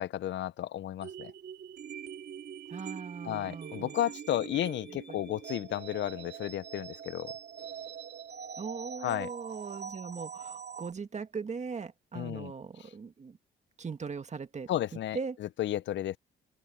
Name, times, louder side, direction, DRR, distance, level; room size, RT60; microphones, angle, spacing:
voice 1, 0.0-1.3 3.2-7.3 9.0-9.3 12.1-12.5 12.8-12.9 14.7-16.2, left 12 dB, 70° left, 0.7 m, -33 dB
sound 1, 1.0-10.9, right 7 dB, 55° right, 3.3 m, -43 dB
voice 2, 2.7-4.0 5.1-5.2 8.6-13.4 13.8-14.7 15.1-15.4, right 5 dB, 35° right, 1.8 m, -39 dB
open air
cardioid pair, 90°, 20 cm